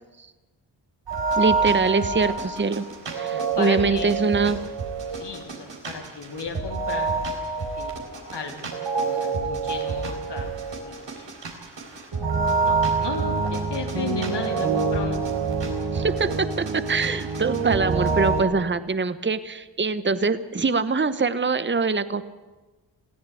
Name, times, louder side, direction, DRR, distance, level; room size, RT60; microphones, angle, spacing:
sound 1, 1.1-18.4, right 4 dB, 75° right, 4.0 m, -26 dB
voice 1, 1.4-4.6 15.9-22.2, right 4 dB, 25° right, 13 dB, 1.1 m, -24 dB
voice 2, 3.3-4.2 5.1-7.1 7.8-7.9 8.3-8.7 9.0-10.5 10.8-11.3 12.6-15.2, left 4 dB, 65° left, 3 dB, 3.5 m, -35 dB
20.5 x 15.0 x 8.5 m, 1.2 s
cardioid pair, 45°, 44 cm